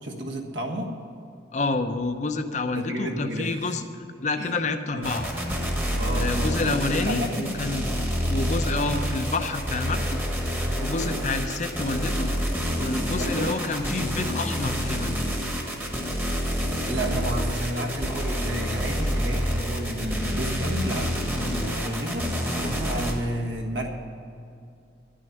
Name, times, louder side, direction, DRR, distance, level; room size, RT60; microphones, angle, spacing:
voice 1, 0.0-0.9 2.7-3.7 4.4-4.5 4.9-5.2 5.9-6.6 7.0-7.5 11.2-11.5 13.2-13.5 16.9-23.9, right 1 dB, 70° right, 1 dB, 1.5 m, -31 dB
voice 2, 1.5-5.3 6.1-7.9 8.3-10.2 10.8-12.3 12.8-15.1, left 3 dB, 40° left, 8 dB, 0.6 m, -28 dB
sound 1, 5.0-23.1, equal, 10° right, 1.2 m, -28 dB
11.5 x 6.4 x 9.3 m, 2.5 s
head